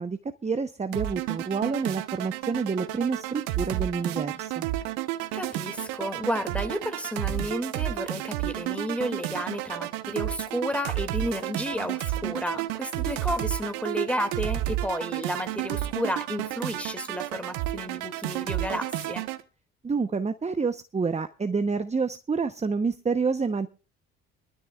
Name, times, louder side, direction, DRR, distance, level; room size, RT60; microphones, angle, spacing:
voice 1, 0.0-4.6 19.8-23.7, right 4 dB, 20° right, 0.9 m, -28 dB
sound 1, 0.9-19.4, right 15 dB, 70° right, 1.1 m, -31 dB
voice 2, 5.3-19.3, equal, 5° left, 2.3 m, -32 dB
23.0 x 13.0 x 2.4 m
hypercardioid pair, 60°, 36 cm